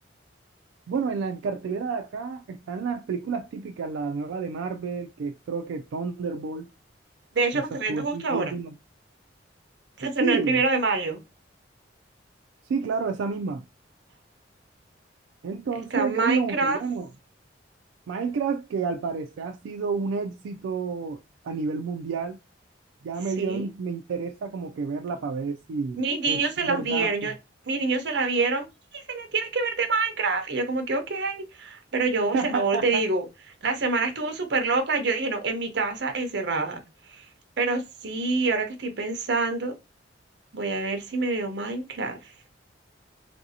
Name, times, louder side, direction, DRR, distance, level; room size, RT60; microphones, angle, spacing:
voice 1, 0.9-6.7 7.5-8.7 10.2-10.6 12.7-13.7 15.4-17.1 18.1-21.2 21.4-22.4 23.0-26.0 26.3-27.1 32.3-33.0, right 5 dB, 85° right, 0.3 m, -30 dB
voice 2, 7.3-8.5 10.0-11.2 15.9-16.8 23.4-23.7 26.0-27.3 27.7-28.6 28.9-33.3 33.6-36.8 37.1-37.2 37.6-39.7 40.5-42.2, right 3 dB, 60° right, 0.7 m, -26 dB
3.1 x 2.6 x 2.7 m
head